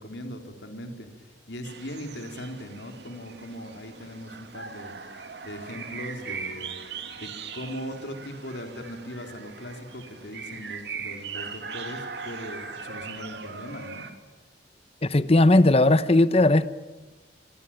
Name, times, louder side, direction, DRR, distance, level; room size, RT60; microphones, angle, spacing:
voice 1, 0.0-14.1, equal, 70° left, 4.0 m, -39 dB
sound 1, 1.6-14.1, right 5 dB, 65° right, 2.5 m, -40 dB
voice 2, 15.0-16.7, left 2 dB, 35° left, 0.9 m, -18 dB
25.0 x 24.0 x 9.1 m
head